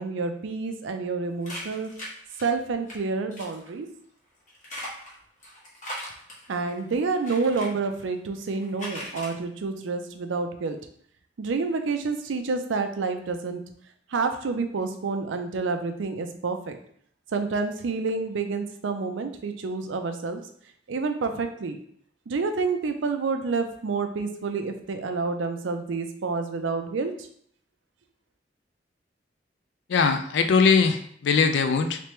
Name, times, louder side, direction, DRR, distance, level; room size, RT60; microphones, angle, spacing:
voice 1, 0.0-1.9 2.4-3.9 6.5-10.8 11.4-13.6 14.1-16.8 17.3-20.4 20.9-21.8 22.3-27.3, right 4 dB, 80° right, 7 dB, 0.5 m, -28 dB
sound 1, 1.4-2.9 3.3-3.7 4.5-7.7 8.4-9.3, equal, 45° left, 1.2 m, -39 dB
voice 2, 29.9-32.0, left 5 dB, 65° left, 8 dB, 0.4 m, -21 dB
3.3 x 3.2 x 3.0 m, 0.64 s
head